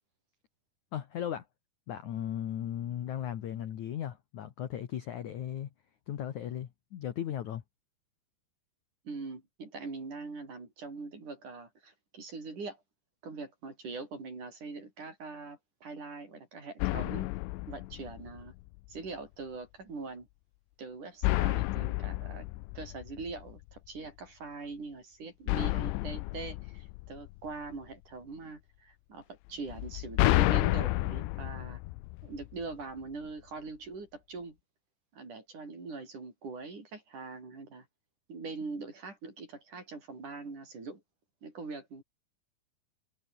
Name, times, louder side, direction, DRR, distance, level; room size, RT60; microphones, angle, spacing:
voice 1, 0.9-1.5 1.9-5.7 6.1-7.6, left 10 dB, 65° left, 1.9 m, -36 dB
voice 2, 9.0-12.8 13.2-17.3 17.7-18.5 18.9-20.3 20.8-22.5 22.7-31.8 32.2-34.6 35.1-37.9 38.3-41.0 41.4-42.0, right 4 dB, 40° right, 7.7 m, -42 dB
sound 1, 16.8-18.7 21.2-23.6 25.5-27.7 29.7-32.8, left 21 dB, 80° left, 3.0 m, -31 dB
omnidirectional pair, 5.5 m